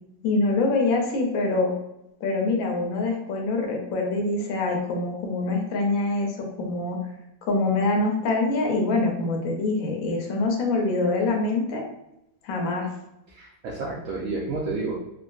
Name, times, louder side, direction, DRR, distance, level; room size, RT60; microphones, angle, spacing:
voice 1, 0.2-1.7 2.2-7.0 7.5-11.8 12.4-12.9, left 3 dB, 65° left, 1 dB, 0.9 m, -25 dB
voice 2, 13.3-15.0, right 3 dB, 80° right, -5 dB, 0.7 m, -30 dB
3.5 x 2.2 x 2.3 m, 0.87 s
omnidirectional pair, 1.9 m